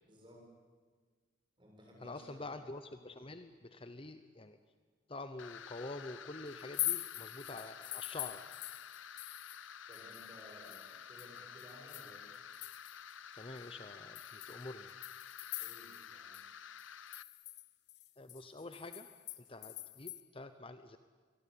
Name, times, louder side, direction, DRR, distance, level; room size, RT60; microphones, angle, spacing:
voice 1, 0.0-0.5 1.6-2.5 9.9-12.3 15.6-16.3, equal, 25° right, 0 dB, 7.7 m, -57 dB
voice 2, 2.0-4.6 5.1-8.4 13.3-14.9 18.2-19.1 19.4-21.0, left 2 dB, 30° left, 10 dB, 0.9 m, -47 dB
sound 1, 5.4-17.2, left 8 dB, 85° left, 0.8 m, -51 dB
sound 2, 6.6-9.7 9.9-13.1 13.6-13.7 14.2-16.1 16.3-16.4 16.8-20.2, left 15 dB, 60° left, 1.0 m, -43 dB
25.5 x 23.0 x 8.8 m, 1.5 s
head